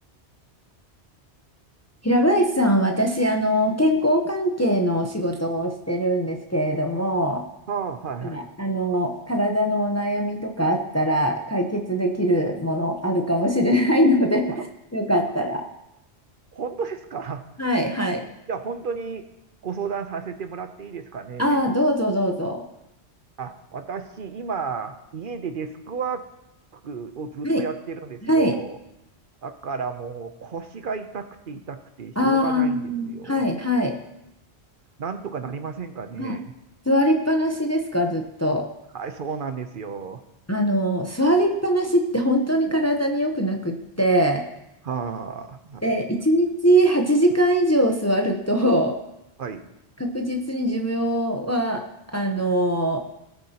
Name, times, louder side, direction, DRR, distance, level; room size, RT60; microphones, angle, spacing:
voice 1, 2.0-7.4 8.2-14.4 14.9-15.6 17.6-18.2 21.4-22.6 27.4-27.6 28.2-28.6 32.2-33.9 36.2-36.4 36.9-38.7 40.5-44.4 45.8-48.9 50.0-51.8 52.1-53.0, equal, 15° left, 3 dB, 0.7 m, -22 dB
voice 2, 7.7-8.4 14.5-14.7 16.5-17.4 18.5-19.3 19.6-21.6 23.4-26.2 26.7-28.8 29.4-33.4 35.0-36.5 38.9-40.2 44.8-45.8 49.4-49.7, right 5 dB, 55° right, 8 dB, 0.8 m, -33 dB
18.5 x 6.8 x 2.9 m, 0.89 s
omnidirectional pair, 1.1 m